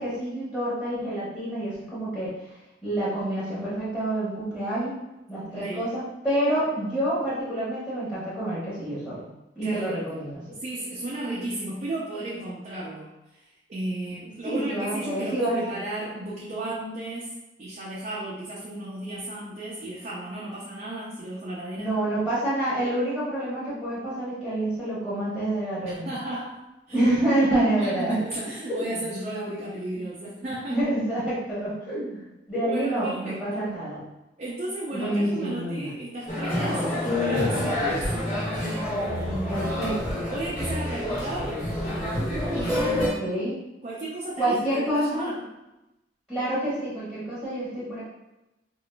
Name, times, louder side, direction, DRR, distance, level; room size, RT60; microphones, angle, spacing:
voice 1, 0.0-2.3 2.8-4.9 5.3-9.3 9.6-10.4 14.4-15.6 21.8-26.1 26.9-28.2 28.8-28.9 30.7-32.2 32.5-34.1 34.9-35.9 39.4-40.3 43.0-43.5 44.4-45.3 46.3-48.0, right 1 dB, 10° left, -12 dB, 1.1 m, -27 dB
voice 2, 5.5-5.9 9.6-10.3 10.6-17.3 17.6-21.9 25.9-26.6 26.9-27.0 27.8-30.8 32.6-33.6 34.4-38.1 38.5-39.6 40.3-41.6 42.5-43.3 43.8-45.4, right 1 dB, 45° right, -6 dB, 0.5 m, -34 dB
sound 1, 36.3-43.1, left 1 dB, 40° left, 1.2 m, -27 dB
3.7 x 2.4 x 2.3 m, 0.98 s
head